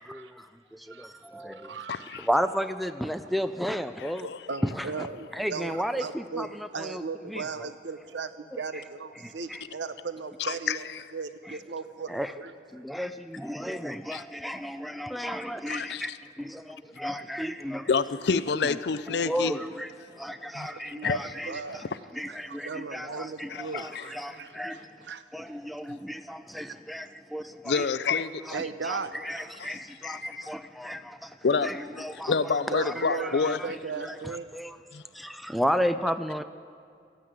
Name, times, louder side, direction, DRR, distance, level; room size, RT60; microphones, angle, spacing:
voice 1, 0.1-0.5 1.3-1.7 2.2-4.3 4.7-4.9 5.3-7.0 7.3-7.4 9.2-9.6 11.5-11.6 12.1-12.3 12.7-16.1 16.4-17.9 18.3-18.4 19.2-19.9 20.2-21.8 22.1-24.9 25.3-27.9 28.5-31.4 31.6-32.3 32.8-34.1 34.5-34.8 35.1-36.4, equal, ahead, 0.3 m, -33 dB
voice 2, 1.4-2.2 4.2-10.9 11.1-12.5 20.7-21.8 22.3-25.2 27.0-27.1 28.5-29.1 32.7-34.5, right 4 dB, 85° right, 0.8 m, -37 dB
voice 3, 1.9-2.3 4.0-4.4 10.4-10.8 14.1-14.2 15.7-16.2 17.9-19.6 20.5-21.2 23.5-24.4 27.6-28.5 29.6-30.5 31.4-33.6 34.9-35.0, left 5 dB, 70° left, 0.5 m, -29 dB
14.5 x 9.3 x 9.5 m
head